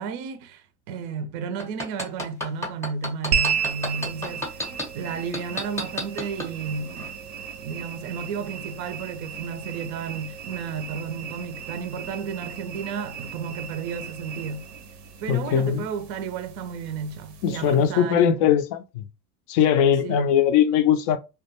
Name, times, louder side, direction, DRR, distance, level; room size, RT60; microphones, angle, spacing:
voice 1, 0.0-4.5 4.9-7.2 7.6-14.7 15.2-18.5 20.0-20.3, right 6 dB, 45° right, 0.5 m, -33 dB
sound 1, 1.6-4.8 5.3-6.5 7.0-7.1, left 1 dB, 5° left, 0.7 m, -29 dB
sound 2, 3.3-17.9, right 7 dB, 85° right, 0.7 m, -34 dB
voice 2, 15.3-15.8 17.4-19.0 19.5-21.2, left 9 dB, 45° left, 0.4 m, -20 dB
2.3 x 2.2 x 2.9 m
hypercardioid pair, 85°, 47 cm